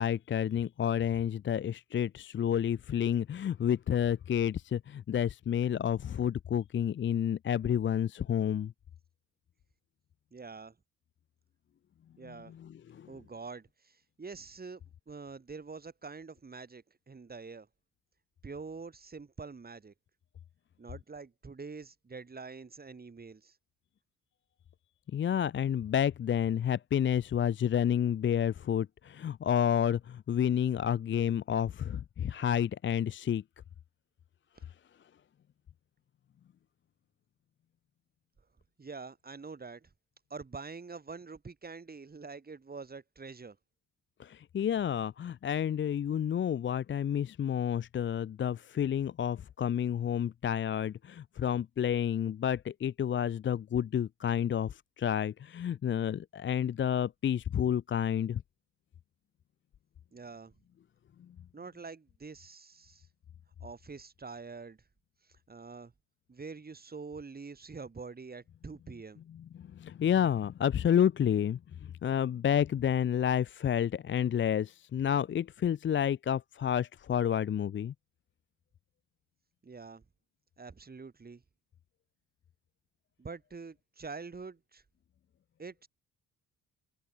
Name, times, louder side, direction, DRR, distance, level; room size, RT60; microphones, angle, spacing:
voice 1, 0.0-8.7 12.6-13.1 25.1-33.4 44.2-58.4 69.8-71.6 72.0-77.9, left 9 dB, 40° left, 0.6 m, -30 dB
voice 2, 10.3-10.7 12.2-12.6 13.1-14.8 15.1-17.7 18.4-19.9 20.8-23.6 38.8-39.9 40.3-43.6 60.1-60.5 61.5-63.1 63.6-64.8 65.5-65.9 66.3-69.2 79.6-80.0 80.6-81.4 83.2-84.8 85.6-85.9, right 4 dB, 30° right, 7.3 m, -45 dB
cardioid pair, 80°, 31 cm